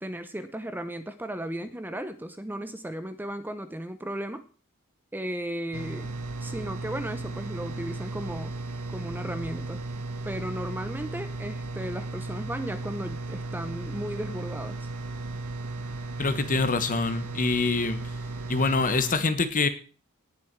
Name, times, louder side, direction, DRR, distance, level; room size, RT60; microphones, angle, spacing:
voice 1, 0.0-4.4 5.1-6.1 6.4-8.5 8.9-9.8 10.2-14.9, right 1 dB, 10° right, 11 dB, 0.7 m, -35 dB
sound 1, 5.7-19.1, right 2 dB, 90° right, 1.4 m, -35 dB
voice 2, 16.2-18.0 18.5-19.7, left 3 dB, 40° left, 11 dB, 1.2 m, -25 dB
18.0 x 7.1 x 4.6 m, 0.38 s
head